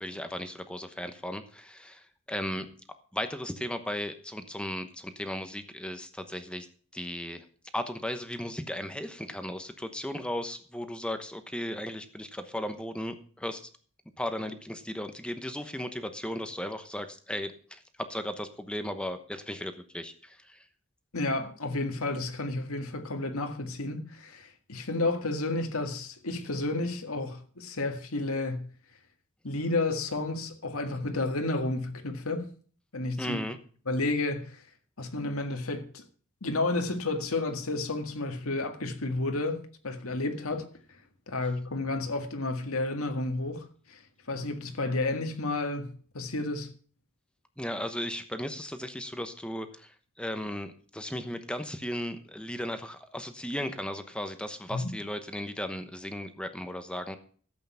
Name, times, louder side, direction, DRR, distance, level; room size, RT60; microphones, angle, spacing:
voice 1, 0.0-2.7 3.1-6.7 6.9-7.4 7.7-13.7 14.2-20.6 33.2-33.6 47.6-57.2, left 1 dB, 5° left, 1.0 m, -36 dB
voice 2, 21.1-28.7 29.4-32.5 32.9-33.4 33.9-34.6 35.0-36.0 36.4-40.7 41.3-43.6 43.9-44.0 44.3-45.9 46.1-46.7 54.7-54.9, left 2 dB, 75° left, 1.9 m, -31 dB
12.5 x 8.5 x 5.7 m
head